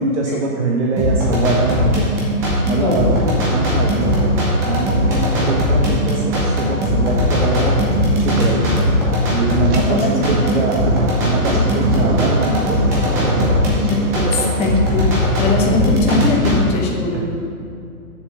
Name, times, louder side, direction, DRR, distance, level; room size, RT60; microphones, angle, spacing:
voice 1, 0.0-2.1 2.6-4.2 4.6-7.8 8.0-8.7 9.3-12.8 13.2-13.7 17.1-17.2, right 3 dB, 50° right, -1 dB, 1.1 m, -23 dB
sound 1, 1.0-16.6, left 1 dB, 5° right, 0.5 m, -18 dB
voice 2, 2.8-3.1 9.9-10.1 10.4-10.5 11.4-11.6 13.8-14.3 14.6-15.1 15.4-17.2, left 4 dB, 15° left, 0 dB, 1.0 m, -21 dB
sound 2, 3.0-14.9, right 3 dB, 75° right, 1.6 m, -30 dB
7.3 x 7.0 x 7.7 m, 2.5 s
hypercardioid pair, 150°, 45 cm